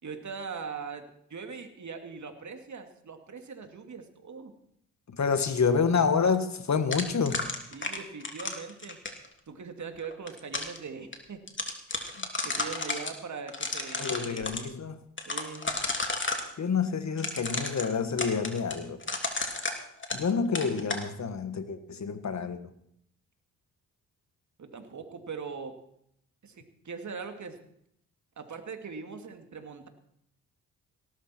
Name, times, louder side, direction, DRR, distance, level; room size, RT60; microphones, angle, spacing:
voice 1, 0.0-4.5 7.7-9.0 9.5-11.4 12.4-14.5 15.2-15.7 24.6-25.8 26.4-27.6 28.4-29.9, right 5 dB, 50° right, 2.6 m, -41 dB
voice 2, 5.1-7.5 12.2-12.3 14.0-15.0 16.6-19.0 20.1-22.6, left 5 dB, 45° left, 1.8 m, -28 dB
sound 1, 6.9-9.3 10.0-10.8 11.1-11.2 11.5-13.1 13.5-14.6 15.2-16.5 17.2-20.3 20.5-21.0, left 3 dB, 30° left, 3.0 m, -32 dB
17.5 x 13.0 x 4.5 m
supercardioid pair, 50°, 37 cm